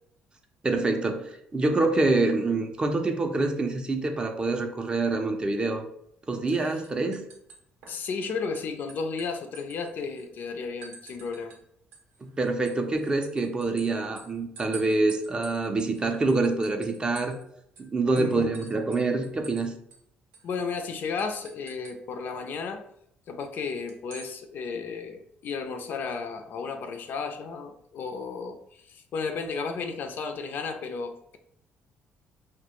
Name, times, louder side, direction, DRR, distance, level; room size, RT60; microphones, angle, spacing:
voice 1, 0.6-5.9 6.3-7.2 12.2-17.4 17.8-19.7, right 3 dB, 25° right, 5 dB, 0.4 m, -26 dB
sound 1, 6.3-6.5 6.8-8.3 8.5-10.3 10.8-11.6 11.9-17.5 17.8-17.9 18.2-19.6 19.9-20.0 20.3-20.5 21.2-22.0 23.9-24.3, right 5 dB, 80° right, 0.5 m, -48 dB
voice 2, 7.9-11.5 18.2-18.6 20.4-22.8 23.3-31.4, left 5 dB, 60° left, 6 dB, 0.3 m, -33 dB
2.2 x 2.1 x 2.9 m, 0.70 s
cardioid pair, 105°, 4 cm